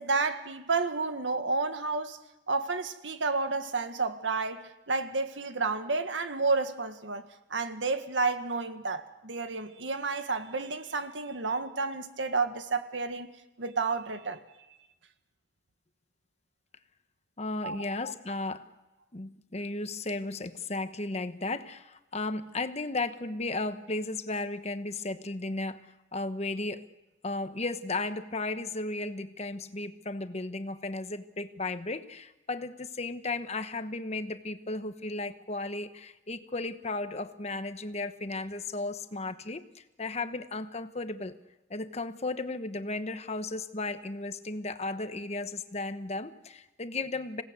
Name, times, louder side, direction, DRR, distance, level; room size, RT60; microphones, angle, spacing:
voice 1, 0.0-2.2 2.5-7.2 7.5-13.3 13.6-14.4 17.6-17.8, right 4 dB, 90° right, 8 dB, 1.7 m, -31 dB
voice 2, 17.4-18.6 19.1-25.8 26.1-26.8 27.2-41.4 41.7-47.4, left 2 dB, 35° left, 10 dB, 1.1 m, -35 dB
26.5 x 17.5 x 8.2 m, 0.99 s
head